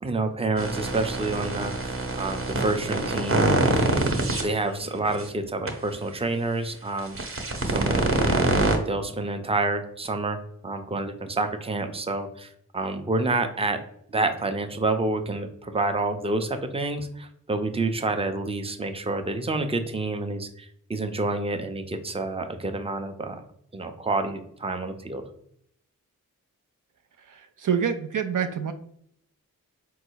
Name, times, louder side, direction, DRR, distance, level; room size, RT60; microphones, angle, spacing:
voice 1, 0.0-3.6 4.3-7.2 7.6-8.5 8.8-10.4 10.6-13.8 14.1-23.4 23.7-25.2, right 2 dB, 15° right, 7 dB, 0.6 m, -28 dB
sound 1, 0.6-4.4 5.0-5.2 5.7-5.8 7.0-8.8, right 2 dB, 40° right, 1.0 m, -25 dB
voice 2, 27.3-28.7, right 7 dB, 65° right, 6 dB, 0.5 m, -27 dB
3.8 x 2.3 x 4.6 m, 0.69 s
cardioid pair, 40°, 34 cm